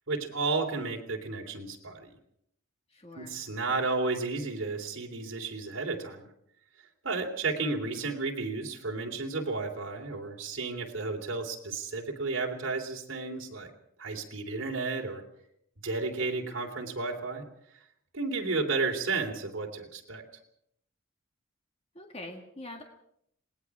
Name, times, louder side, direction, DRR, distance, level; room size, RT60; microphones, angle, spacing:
voice 1, 0.1-2.1 3.1-6.3 7.0-13.7 14.0-15.2 15.8-17.4 18.1-20.2, right 3 dB, 60° right, 0 dB, 3.2 m, -32 dB
voice 2, 2.9-3.4 22.0-22.8, left 1 dB, 30° left, 3 dB, 1.8 m, -44 dB
27.5 x 19.5 x 4.9 m, 0.72 s
head